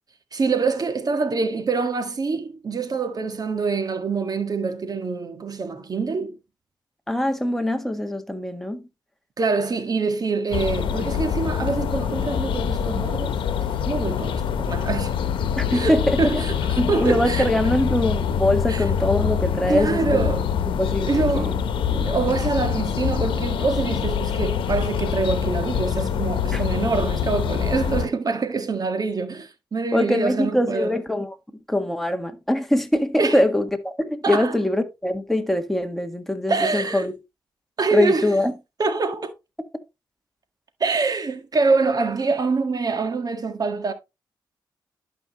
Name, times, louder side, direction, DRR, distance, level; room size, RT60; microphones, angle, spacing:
voice 1, 0.3-6.4 9.4-13.4 13.7-15.2 15.7-17.5 18.7-18.8 19.7-20.5 21.1-21.6 21.9-30.9 33.2-33.4 34.2-34.5 36.5-37.1 37.8-38.3 38.8-39.3 40.8-43.9, right 4 dB, 50° right, 1.7 m, -25 dB
voice 2, 7.1-8.8 15.6-16.4 16.8-20.2 20.8-21.6 26.5-26.6 29.9-31.4 31.7-37.1 37.9-38.5, left 1 dB, 5° left, 1.6 m, -23 dB
sound 1, 10.5-28.1, left 8 dB, 90° left, 1.0 m, -25 dB
11.5 x 5.4 x 3.0 m
cardioid pair, 60°, 8 cm